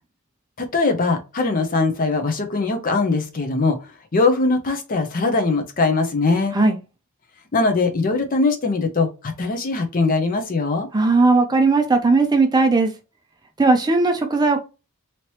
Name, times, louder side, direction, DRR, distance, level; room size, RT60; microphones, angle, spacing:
voice 1, 0.6-6.6 7.5-10.9, left 3 dB, 40° left, 0.6 m, -21 dB
voice 2, 10.9-12.9 13.6-14.6, right 3 dB, 20° right, 0.4 m, -17 dB
3.0 x 2.9 x 3.0 m
head